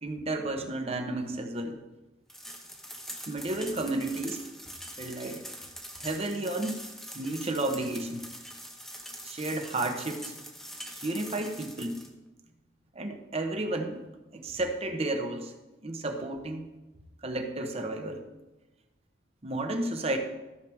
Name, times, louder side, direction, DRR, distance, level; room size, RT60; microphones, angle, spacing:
voice 1, 0.0-1.8 3.3-4.4 5.0-5.4 6.0-6.8 7.1-8.3 9.2-10.4 10.9-12.0 12.9-14.0 14.3-15.5 15.8-16.7 17.2-18.2 19.4-20.2, right 2 dB, 30° right, 5 dB, 0.9 m, -32 dB
sound 1, 2.3-12.1, equal, ahead, 0.8 m, -44 dB
14.0 x 6.6 x 3.5 m, 1.1 s
head